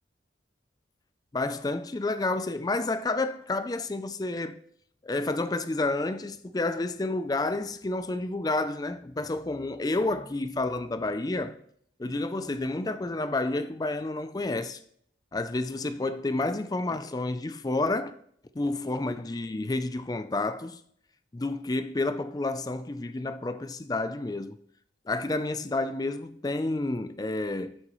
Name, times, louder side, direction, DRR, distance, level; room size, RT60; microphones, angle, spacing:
voice 1, 1.3-4.6 5.0-11.6 12.0-14.8 15.3-18.2 18.6-20.8 21.3-24.6 25.1-27.8, left 2 dB, 20° left, 0.4 m, -30 dB
13.0 x 9.7 x 3.1 m
head